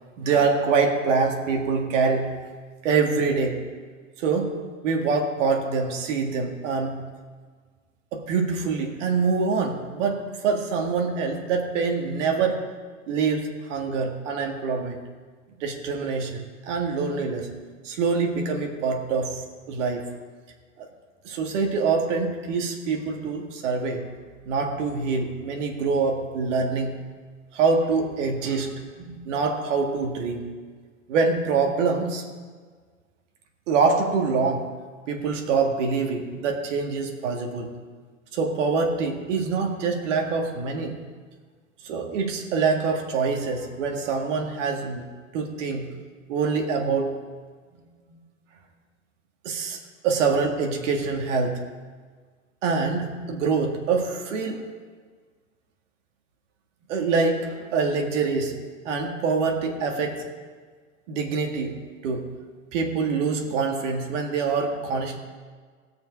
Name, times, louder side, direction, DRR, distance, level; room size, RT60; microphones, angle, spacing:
voice 1, 0.2-2.3 2.8-3.6 4.2-7.0 8.1-12.6 13.1-15.0 15.6-17.5 17.8-19.4 19.7-20.0 20.8-20.9 21.2-24.1 24.5-27.0 27.5-30.5 31.1-32.2 33.7-34.7 35.1-37.7 38.3-41.0 41.8-45.0 45.3-45.9 46.3-47.2 47.7-48.2 49.4-49.8 50.0-51.7 52.6-54.6 56.9-60.3 61.1-62.3 62.7-65.2, right 4 dB, 65° right, 2 dB, 2.1 m, -25 dB
17.5 x 6.6 x 4.7 m, 1.5 s
hypercardioid pair, 100°, 39 cm